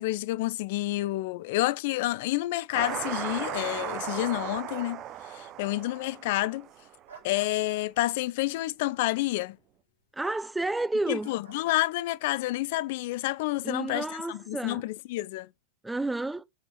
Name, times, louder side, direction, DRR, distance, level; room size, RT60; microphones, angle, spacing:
voice 1, 0.0-6.7 7.2-9.6 11.1-15.5, left 17 dB, 50° left, 0.5 m, -29 dB
sound 1, 2.7-7.0, right 12 dB, 35° right, 0.9 m, -36 dB
sound 2, 3.8-4.9 7.1-7.5 10.2-10.4 11.2-11.6, right 5 dB, 70° right, 5.3 m, -47 dB
voice 2, 10.1-11.3 13.6-14.8 15.8-16.5, right 2 dB, 5° right, 0.7 m, -31 dB
7.1 x 5.4 x 6.4 m
figure-of-eight pair, 90°, 0 cm